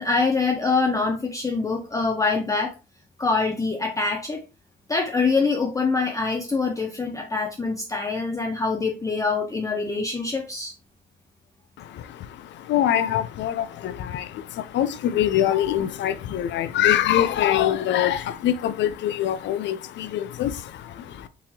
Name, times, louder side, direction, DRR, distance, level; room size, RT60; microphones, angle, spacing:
voice 1, 0.0-2.7 3.2-4.4 4.9-10.7, left 4 dB, 15° left, 0.5 m, -24 dB
voice 2, 11.8-21.3, left 11 dB, 65° left, 0.4 m, -24 dB
3.8 x 2.8 x 2.7 m
cardioid pair, 90°, 20 cm